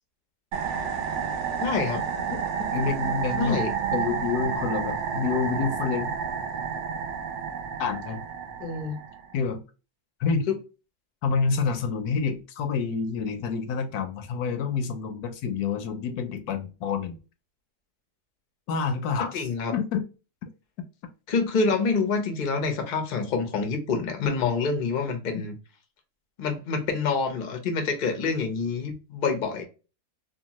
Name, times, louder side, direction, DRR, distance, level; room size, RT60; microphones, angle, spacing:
sound 1, 0.5-9.3, right 7 dB, 65° right, 0.7 m, -30 dB
voice 1, 1.6-2.0 3.4-3.7 8.6-9.0 10.5-10.6 19.2-19.7 21.3-25.5 26.4-29.6, left 4 dB, 55° left, 0.5 m, -27 dB
voice 2, 2.6-3.6 3.9-6.2 7.8-8.2 9.3-9.6 10.2-10.5 11.2-17.2 18.7-19.3 19.7-20.0, left 5 dB, 75° left, 1.0 m, -28 dB
2.9 x 2.2 x 2.8 m
omnidirectional pair, 1.7 m